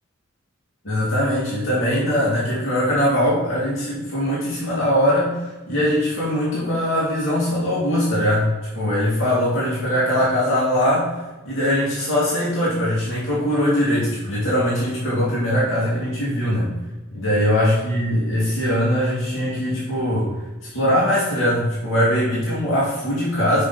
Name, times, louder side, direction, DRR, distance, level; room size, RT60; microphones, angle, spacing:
voice 1, 0.8-11.1 11.4-16.7 17.1-20.3 20.7-23.6, equal, 70° left, -8 dB, 2.4 m, -21 dB
6.2 x 5.2 x 4.1 m, 1.2 s
head